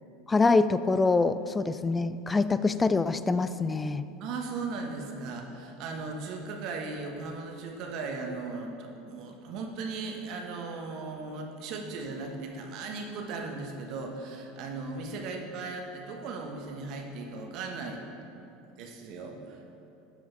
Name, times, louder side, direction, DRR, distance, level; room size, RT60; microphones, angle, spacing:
voice 1, 0.3-4.0, left 3 dB, 20° left, 14 dB, 0.3 m, -25 dB
voice 2, 4.2-18.0 18.7-19.6, right 3 dB, 55° right, 2 dB, 1.2 m, -37 dB
12.5 x 5.0 x 3.9 m, 2.7 s
hypercardioid pair, 90°, 0 cm